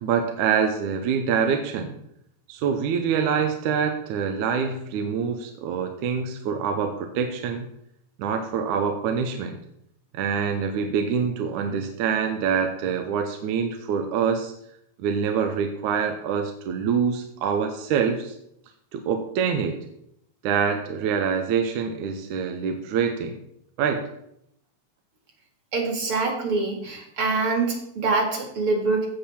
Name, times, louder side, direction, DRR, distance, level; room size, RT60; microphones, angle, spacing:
voice 1, 0.0-1.9 2.5-7.7 8.2-9.6 10.1-14.5 15.0-18.4 18.9-19.8 20.4-23.4 23.8-24.1, right 6 dB, 75° right, 5 dB, 2.2 m, -25 dB
voice 2, 25.7-29.1, right 3 dB, 45° right, 2 dB, 2.5 m, -25 dB
16.0 x 7.1 x 4.3 m, 0.76 s
omnidirectional pair, 3.7 m